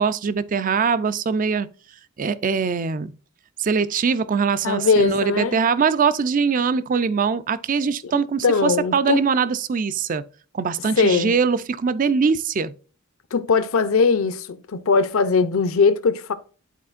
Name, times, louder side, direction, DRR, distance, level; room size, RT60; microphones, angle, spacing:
voice 1, 0.0-1.7 2.2-3.1 3.6-10.2 10.5-12.7, right 5 dB, 40° right, 0.4 m, -22 dB
voice 2, 4.6-5.6 8.4-9.2 11.0-11.3 13.3-16.3, left 4 dB, 70° left, 0.6 m, -20 dB
11.0 x 4.3 x 2.4 m
head